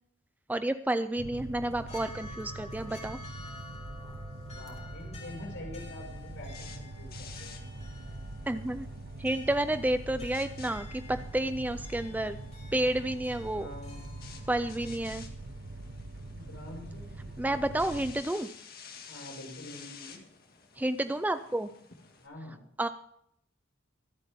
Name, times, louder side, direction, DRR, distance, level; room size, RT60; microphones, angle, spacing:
voice 1, 0.5-3.2 8.5-8.9 9.2-12.4 12.7-13.7 14.5-15.2 17.4-18.5 20.8-21.7 22.8-22.9, right 1 dB, 10° right, 11 dB, 0.4 m, -30 dB
sound 1, 1.2-18.2, right 2 dB, 65° right, 0.9 m, -43 dB
sound 2, 1.4-14.9, left 3 dB, 35° left, 3.1 m, -51 dB
voice 2, 4.5-7.7 13.5-14.0 16.3-18.0 19.1-20.2 22.2-22.6, left 1 dB, 75° left, 0 dB, 6.0 m, -46 dB
sound 3, 5.8-22.3, left 6 dB, 50° left, 1.9 m, -53 dB
24.0 x 8.1 x 3.6 m, 0.71 s
head